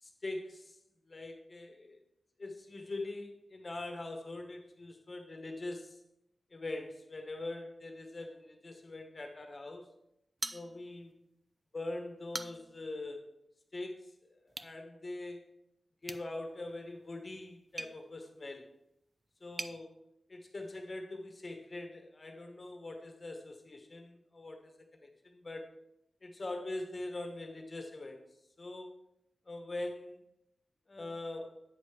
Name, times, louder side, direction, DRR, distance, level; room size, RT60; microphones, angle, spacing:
voice 1, 0.0-0.8 1.1-2.0 2.4-6.0 6.5-9.9 10.5-11.1 11.7-13.3 13.7-15.4 16.0-18.7 19.4-19.9 20.3-24.7 25.0-25.7 26.2-28.2 28.6-28.9 29.5-30.2 30.9-31.6, left 2 dB, 35° left, 4 dB, 1.4 m, -43 dB
sound 1, 10.4-11.2 11.5-11.6 12.1-12.8 14.5-14.8 16.0-19.8, right 2 dB, 35° right, 0.5 m, -45 dB
8.7 x 5.3 x 5.1 m, 0.80 s
wide cardioid pair, 105°, 0 cm